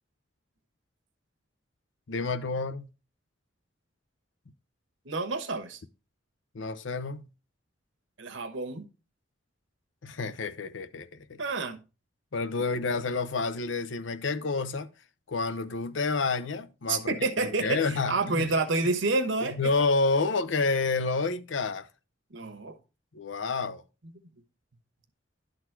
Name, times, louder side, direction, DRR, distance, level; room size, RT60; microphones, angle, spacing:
voice 1, 2.1-2.9 6.5-7.3 10.0-11.4 12.3-14.9 15.3-18.5 19.6-21.9 23.1-23.8, left 3 dB, 70° left, 0.6 m, -29 dB
voice 2, 5.0-5.8 8.2-8.9 11.4-11.8 16.9-19.7 22.3-22.8 24.0-24.1, right 3 dB, 75° right, 1.1 m, -29 dB
11.5 x 3.9 x 4.5 m
head